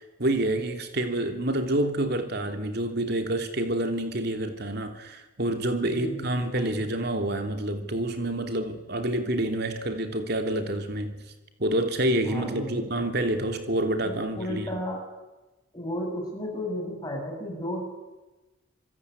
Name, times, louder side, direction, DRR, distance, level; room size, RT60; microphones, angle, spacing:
voice 1, 0.0-11.2 11.6-14.7, right 1 dB, 50° right, 6 dB, 3.0 m, -28 dB
voice 2, 5.8-6.9 12.3-13.0 14.0-15.1 15.7-18.0, equal, 20° left, 1 dB, 7.8 m, -34 dB
26.0 x 22.5 x 9.8 m, 1.1 s
head